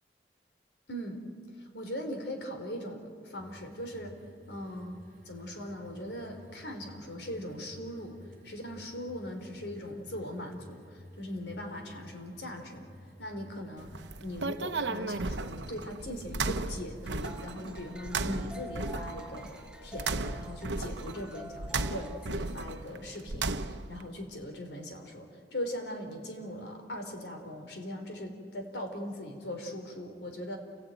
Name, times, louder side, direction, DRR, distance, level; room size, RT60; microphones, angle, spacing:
voice 1, 0.9-1.2 1.6-4.2 4.5-8.2 8.4-12.9 13.2-30.6, left 1 dB, 80° left, 5 dB, 4.0 m, -40 dB
sound 1, 3.4-17.0, equal, 50° right, 3.1 m, -53 dB
sound 2, 13.8-24.0, right 3 dB, 85° right, 1.0 m, -35 dB
sound 3, 17.0-22.3, equal, 5° right, 1.0 m, -48 dB
28.5 x 17.5 x 9.1 m, 2.2 s
head